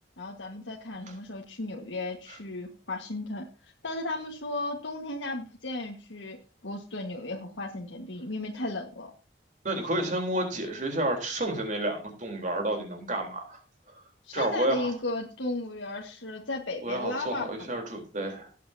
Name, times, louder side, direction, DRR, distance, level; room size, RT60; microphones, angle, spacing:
voice 1, 0.2-6.4 6.6-9.1 14.2-17.7 18.2-18.3, left 2 dB, 90° left, 1.7 m, -35 dB
voice 2, 9.6-13.6 14.3-14.9 16.8-18.5, right 1 dB, 40° right, 3.7 m, -30 dB
17.5 x 8.5 x 2.8 m
head